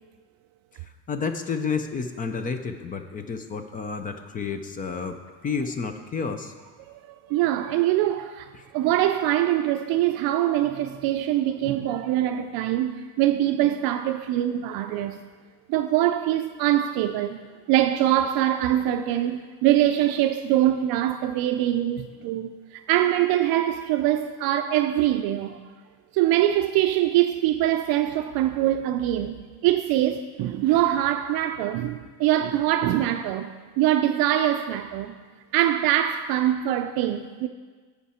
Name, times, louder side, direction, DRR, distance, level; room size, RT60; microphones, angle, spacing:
voice 1, 1.1-5.2 5.4-6.5, left 5 dB, 20° left, 0.3 m, -30 dB
voice 2, 6.9-15.2 15.7-17.4 17.7-25.6 26.1-29.4 29.6-35.2 35.5-37.5, right 12 dB, 60° right, 0.5 m, -23 dB
15.5 x 5.8 x 4.2 m
cardioid pair, 155°, 42 cm